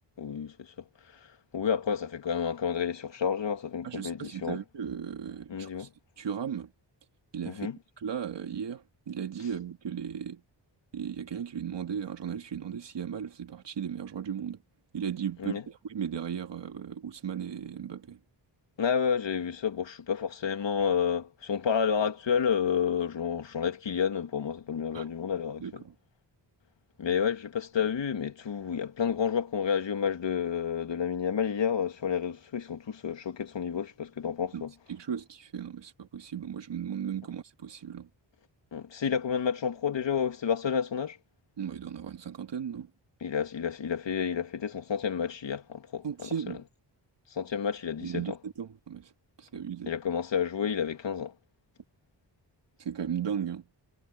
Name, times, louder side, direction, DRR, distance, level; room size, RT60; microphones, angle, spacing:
voice 1, 0.2-0.7 1.0-4.6 5.5-5.9 7.5-7.8 15.4-15.6 18.8-25.8 27.0-34.7 38.7-41.2 43.2-46.3 47.3-48.4 49.9-51.3, left 7 dB, 80° left, 2.5 m, -30 dB
voice 2, 3.8-5.9 6.2-6.7 7.3-7.7 8.0-10.4 10.9-14.6 14.9-18.2 24.9-25.0 25.6-25.9 34.5-34.6 34.9-38.1 41.6-42.9 46.0-46.6 48.0-49.1 49.4-49.9 52.8-53.6, right 8 dB, 70° right, 2.0 m, -36 dB
wide cardioid pair, 110°, 44 cm